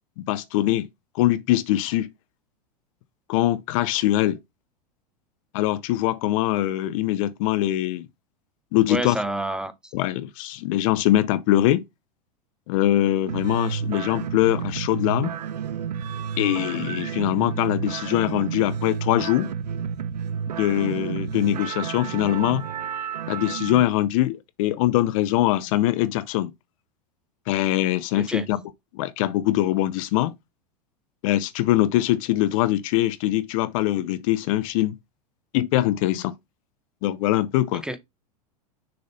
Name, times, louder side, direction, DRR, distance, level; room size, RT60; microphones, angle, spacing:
voice 1, 0.3-0.9 1.1-2.1 3.3-4.4 5.5-8.1 8.7-9.1 9.9-11.8 12.7-15.4 16.4-19.5 20.6-22.6 23.3-26.5 27.5-28.6 28.9-30.3 31.2-34.9 35.5-36.3 37.0-37.8, left 14 dB, 55° left, 0.6 m, -22 dB
voice 2, 8.9-9.9 28.1-28.5 37.8-38.0, right 1 dB, 5° right, 0.7 m, -29 dB
sound 1, 13.3-23.8, right 7 dB, 85° right, 0.5 m, -31 dB
6.6 x 3.9 x 3.9 m
hypercardioid pair, 95°, 20 cm